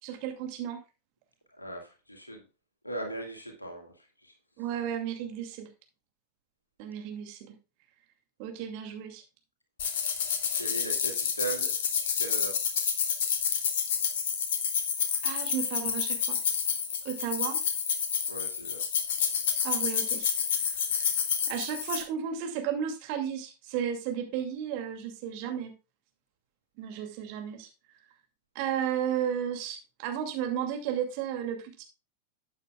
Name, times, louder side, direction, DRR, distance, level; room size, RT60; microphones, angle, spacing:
voice 1, 0.0-0.8 4.6-5.7 6.8-7.5 8.4-9.2 15.2-16.4 17.0-17.6 19.6-20.3 20.6-21.1 21.5-25.7 26.8-27.7 28.5-31.8, right 9 dB, 45° right, 5 dB, 2.4 m, -33 dB
voice 2, 1.5-2.4 2.8-4.3 10.5-12.6 18.3-18.8, right 2 dB, 85° left, 3 dB, 2.5 m, -39 dB
sound 1, 9.8-22.0, left 7 dB, 55° left, 1.9 m, -29 dB
12.0 x 8.6 x 2.3 m, 0.30 s
figure-of-eight pair, 90°, 0 cm